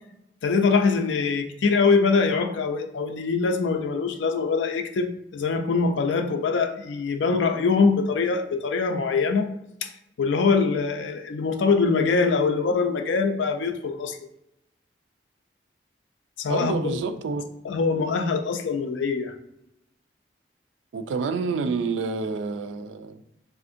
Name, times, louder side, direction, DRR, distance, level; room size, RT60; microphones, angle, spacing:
voice 1, 0.4-9.5 9.8-9.9 10.2-14.2 16.4-16.8 17.6-19.3, left 4 dB, 90° left, 0.4 m, -23 dB
voice 2, 16.5-17.4 20.9-23.2, right 4 dB, 90° right, 0.3 m, -28 dB
3.5 x 2.5 x 2.5 m
head